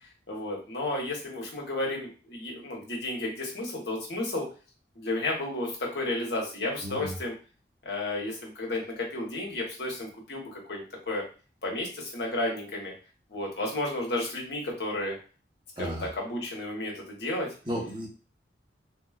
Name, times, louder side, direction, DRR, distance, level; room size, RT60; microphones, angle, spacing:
voice 1, 0.3-4.4 5.0-7.3 7.8-11.2 11.6-12.9 13.3-15.2 15.8-17.5, left 2 dB, 70° left, -2 dB, 1.0 m, -32 dB
voice 2, 6.8-7.1 15.8-16.1 17.6-18.1, equal, 25° right, -3 dB, 0.9 m, -33 dB
3.5 x 2.3 x 2.3 m, 0.35 s
head